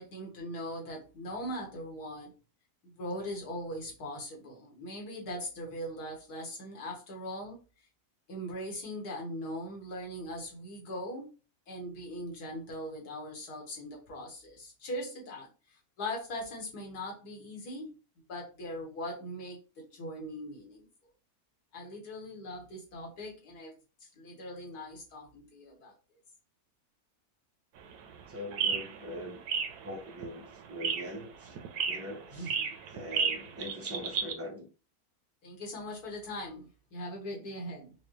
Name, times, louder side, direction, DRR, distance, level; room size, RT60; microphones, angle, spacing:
voice 1, 0.0-2.3 2.8-7.6 8.3-11.3 11.7-20.9 21.7-23.8 24.0-26.0 32.3-32.7 35.4-37.9, equal, 85° left, 1.9 m, -40 dB
sound 1, 27.8-34.3, right 6 dB, 85° right, 1.2 m, -34 dB
voice 2, 28.3-29.4 29.8-31.6 31.9-32.5 32.9-34.7, equal, 15° right, 0.5 m, -42 dB
4.9 x 2.2 x 3.1 m
omnidirectional pair, 1.6 m